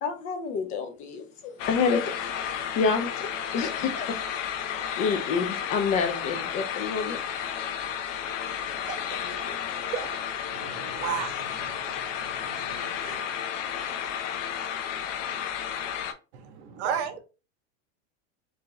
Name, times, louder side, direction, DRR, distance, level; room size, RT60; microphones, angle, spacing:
voice 1, 0.0-4.2 5.0-7.2, left 5 dB, 20° left, 0.3 m, -28 dB
sound 1, 1.6-16.1, left 8 dB, 90° left, 0.9 m, -32 dB
voice 2, 8.7-9.2 9.5-10.1 16.6-17.2, right 7 dB, 40° right, 1.7 m, -38 dB
voice 3, 10.5-13.2 16.3-17.2, right 8 dB, 60° right, 0.8 m, -35 dB
4.5 x 2.6 x 3.0 m
supercardioid pair, 160°, 37 cm